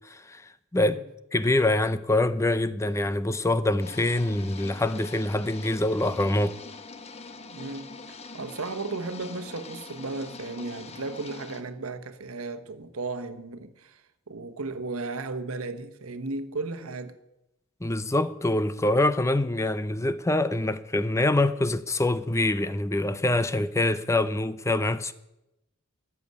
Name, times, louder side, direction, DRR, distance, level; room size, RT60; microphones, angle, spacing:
voice 1, 0.1-0.4 0.7-1.0 1.3-6.6 17.8-25.1, left 2 dB, 15° left, 0.5 m, -25 dB
sound 1, 3.8-11.6, left 4 dB, 30° left, 1.0 m, -43 dB
voice 2, 7.5-7.9 8.3-14.0 14.3-17.2, right 3 dB, 80° right, 1.2 m, -35 dB
14.0 x 7.0 x 9.4 m
head